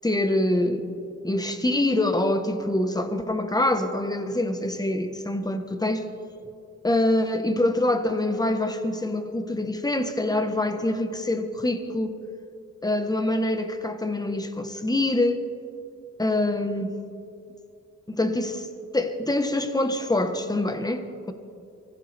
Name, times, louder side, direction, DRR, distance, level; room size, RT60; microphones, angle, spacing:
voice 1, 0.0-0.9 1.2-6.0 6.8-12.1 12.8-15.4 16.2-17.0 18.1-18.7 18.9-21.3, left 1 dB, 15° left, 1.3 m, -25 dB
23.5 x 16.0 x 3.5 m
cardioid pair, 80°, 29 cm